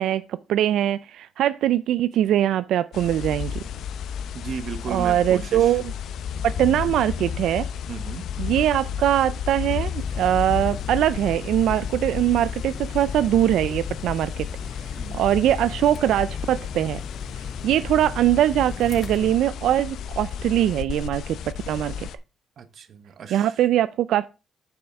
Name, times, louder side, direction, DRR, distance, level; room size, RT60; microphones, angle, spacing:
voice 1, 0.0-3.5 4.9-5.9 6.4-7.7 8.4-14.5 14.8-17.0 17.6-22.0 23.3-24.3, right 12 dB, 80° right, 0.4 m, -22 dB
sound 1, 2.9-22.2, left 8 dB, 70° left, 0.6 m, -32 dB
voice 2, 4.3-5.8 7.9-8.3 15.0-15.2 22.6-23.6, right 7 dB, 50° right, 1.1 m, -35 dB
sound 2, 10.0-19.4, left 5 dB, 30° left, 0.4 m, -37 dB
8.6 x 7.0 x 3.5 m
cardioid pair, 155°, 0 cm